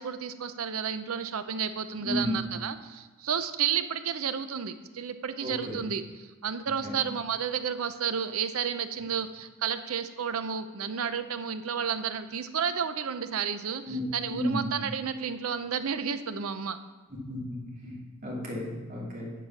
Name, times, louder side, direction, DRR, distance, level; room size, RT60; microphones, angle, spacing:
voice 1, 0.0-16.8, right 7 dB, 85° right, 11 dB, 0.6 m, -31 dB
voice 2, 2.0-2.3 5.4-5.8 6.8-7.0 13.9-14.7 17.3-19.3, left 1 dB, 45° right, -5 dB, 2.9 m, -33 dB
10.0 x 4.9 x 5.8 m, 1.3 s
head